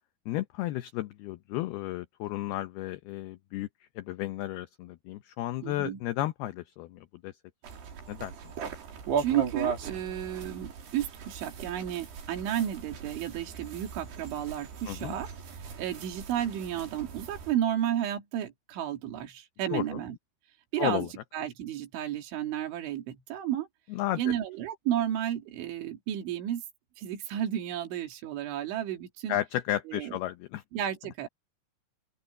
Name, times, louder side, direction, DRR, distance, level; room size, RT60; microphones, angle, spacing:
voice 1, 0.3-3.7 4.0-7.4 8.1-8.3 14.9-15.2 19.7-20.0 20.8-21.1 23.9-24.3 29.3-30.6, left 14 dB, 85° left, 2.2 m, -33 dB
voice 2, 5.6-6.0 9.2-15.3 15.8-20.2 20.7-21.1 21.3-23.7 24.2-26.6 27.0-29.4 29.9-30.2 30.7-31.3, right 11 dB, 75° right, 4.5 m, -32 dB
sound 1, 7.6-17.5, right 6 dB, 60° right, 5.5 m, -38 dB
open air
omnidirectional pair, 5.5 m